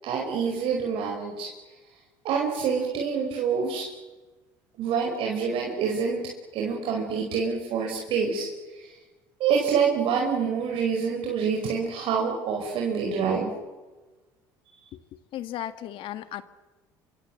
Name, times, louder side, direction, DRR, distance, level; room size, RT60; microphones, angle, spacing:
voice 1, 0.0-1.5 2.2-3.9 4.8-6.2 6.5-8.5 8.7-9.0 9.4-13.5, right 6 dB, 65° right, 0 dB, 5.2 m, -26 dB
voice 2, 14.9-16.4, left 12 dB, 60° left, 11 dB, 1.8 m, -36 dB
26.5 x 25.0 x 7.9 m, 1.2 s
hypercardioid pair, 75°, 10 cm